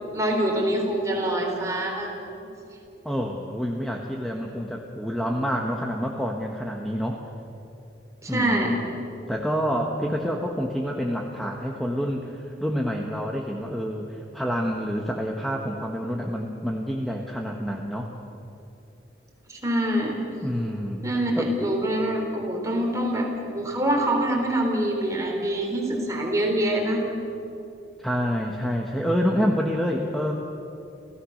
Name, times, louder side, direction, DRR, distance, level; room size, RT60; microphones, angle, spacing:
voice 1, 0.1-2.3 8.2-8.8 19.5-20.2 21.0-27.0, right 1 dB, 20° right, 0 dB, 3.7 m, -25 dB
voice 2, 3.0-7.2 8.3-8.7 9.3-18.1 20.4-21.1 21.4-21.5 28.0-30.3, equal, ahead, 0 dB, 1.2 m, -27 dB
29.5 x 15.5 x 6.5 m, 2.7 s
head